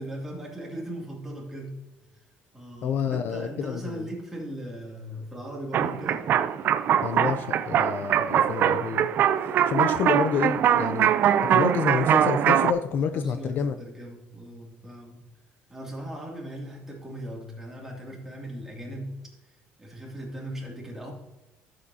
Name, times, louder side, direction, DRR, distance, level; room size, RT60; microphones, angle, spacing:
voice 1, 0.0-1.8 2.1-2.2 2.5-6.3 13.1-15.2 15.7-19.2 19.5-21.1, right 1 dB, 5° right, -3 dB, 2.5 m, -38 dB
voice 2, 2.8-4.1 7.0-9.1 9.4-11.1 11.4-13.7, left 7 dB, 50° left, 10 dB, 0.4 m, -29 dB
sound 1, 5.7-12.7, right 9 dB, 50° right, 0.5 m, -22 dB
12.5 x 7.6 x 2.7 m, 1.1 s
cardioid pair, 150°, 4 cm